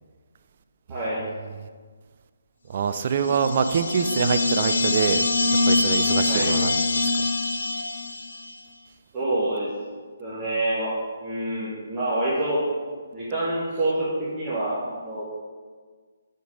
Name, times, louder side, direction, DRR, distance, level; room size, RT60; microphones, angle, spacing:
voice 1, 0.9-1.2 6.3-6.5 9.1-9.7 10.2-10.9 11.2-12.6 13.1-15.2, right 1 dB, 20° right, -10 dB, 1.3 m, -26 dB
voice 2, 2.7-7.1, right 6 dB, 45° right, 10 dB, 0.3 m, -25 dB
sound 1, 3.1-8.5, left 3 dB, 60° left, 0.4 m, -24 dB
4.7 x 4.2 x 5.1 m, 1.5 s
figure-of-eight pair, 140°, 0 cm